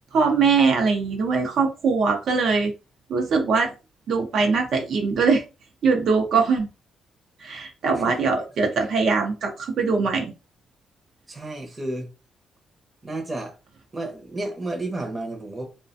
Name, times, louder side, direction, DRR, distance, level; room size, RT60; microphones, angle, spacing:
voice 1, 0.1-2.7 3.1-3.7 4.1-5.4 5.8-6.7 7.4-10.3, right 4 dB, 65° right, 0.5 m, -21 dB
voice 2, 7.9-8.3 11.3-12.1 13.0-13.6 13.9-15.6, right 2 dB, 25° right, 0.7 m, -32 dB
2.4 x 2.2 x 2.5 m
cardioid pair, 115°, 0 cm